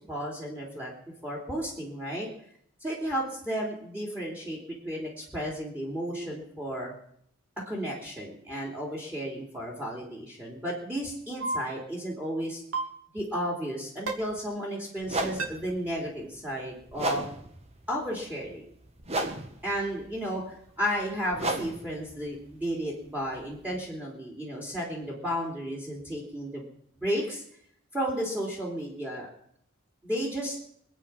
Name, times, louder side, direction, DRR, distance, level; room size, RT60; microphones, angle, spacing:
voice 1, 0.1-0.9 1.2-2.3 2.8-6.9 7.7-12.6 13.1-17.2 17.9-18.6 19.6-26.7 27.0-27.4 27.9-29.3 30.0-30.6, equal, 10° right, -2 dB, 3.5 m, -33 dB
sound 1, 11.4-11.6 12.7-12.9 14.1-14.2 15.4-15.5, right 3 dB, 80° right, 3.0 m, -28 dB
sound 2, 14.3-14.4 15.0-23.9, right 2 dB, 30° right, 1.7 m, -36 dB
24.5 x 9.1 x 5.9 m, 0.67 s
head